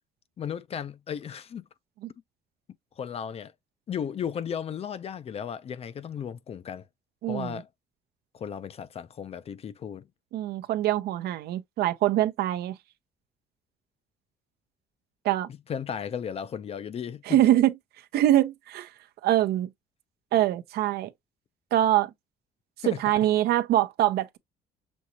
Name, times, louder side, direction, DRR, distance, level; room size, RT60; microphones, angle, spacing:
voice 1, 0.4-1.6 3.0-3.5 3.9-6.8 7.3-7.7 8.3-10.1 15.7-17.4 22.8-23.0, left 8 dB, 35° left, 0.4 m, -35 dB
voice 2, 7.2-7.6 10.3-12.8 15.2-15.5 17.3-17.7 18.1-18.9 19.2-19.7 20.3-21.1 21.7-22.1 22.9-24.4, right 13 dB, 70° right, 0.6 m, -24 dB
6.3 x 2.8 x 2.7 m
cardioid pair, 110°, 17 cm